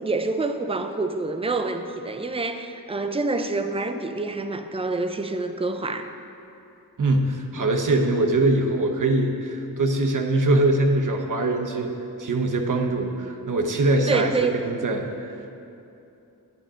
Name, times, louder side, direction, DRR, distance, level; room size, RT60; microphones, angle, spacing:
voice 1, 0.0-6.1 14.1-14.6, right 3 dB, 15° right, 7 dB, 0.5 m, -27 dB
voice 2, 7.0-11.9 12.2-15.4, right 2 dB, 55° right, 3 dB, 1.1 m, -23 dB
11.5 x 10.0 x 3.8 m, 2.8 s
wide cardioid pair, 90°, 37 cm